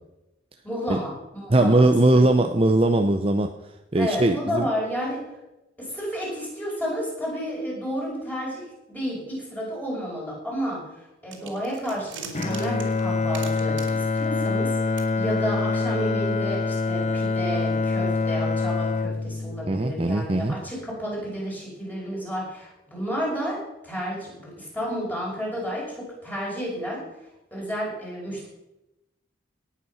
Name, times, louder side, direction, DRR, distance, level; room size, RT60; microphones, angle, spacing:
voice 1, 0.6-2.4 4.0-5.2 5.8-11.0 11.2-27.1 27.5-28.5, equal, 10° left, -4 dB, 5.9 m, -31 dB
voice 2, 1.5-3.5 3.9-4.7 19.7-20.5, right 2 dB, 30° right, 7 dB, 0.6 m, -20 dB
sound 1, 11.3-14.7 15.0-15.1, right 7 dB, 70° right, 2.7 m, -41 dB
Bowed string instrument, 12.3-20.6, left 3 dB, 35° left, 0.8 m, -26 dB
18.5 x 8.4 x 5.7 m, 0.95 s
head